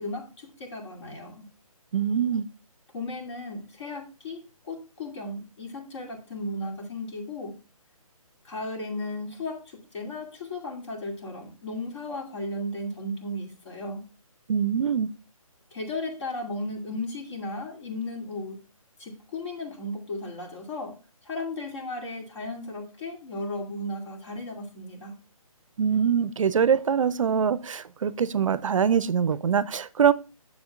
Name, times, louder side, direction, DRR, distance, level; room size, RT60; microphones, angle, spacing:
voice 1, 0.0-1.5 2.9-7.6 8.4-14.0 15.7-18.6 19.0-20.9 21.2-25.1, left 2 dB, 50° left, 2.5 m, -35 dB
voice 2, 1.9-2.4 14.5-15.1 25.8-30.1, right 7 dB, 60° right, 0.4 m, -23 dB
9.4 x 7.0 x 2.4 m
hypercardioid pair, 155°, 19 cm